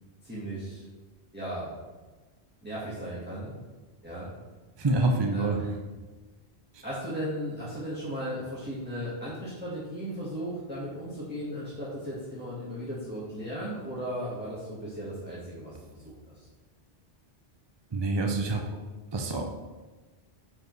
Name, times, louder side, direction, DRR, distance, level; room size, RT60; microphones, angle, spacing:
voice 1, 0.2-0.8 1.3-1.7 2.6-3.5 4.0-4.3 5.3-5.6 6.8-16.5, equal, 10° right, -9 dB, 1.5 m, -36 dB
voice 2, 4.8-5.6 17.9-18.6 19.1-19.4, right 2 dB, 35° right, 2 dB, 0.5 m, -26 dB
9.7 x 4.9 x 3.2 m, 1.3 s
omnidirectional pair, 1.1 m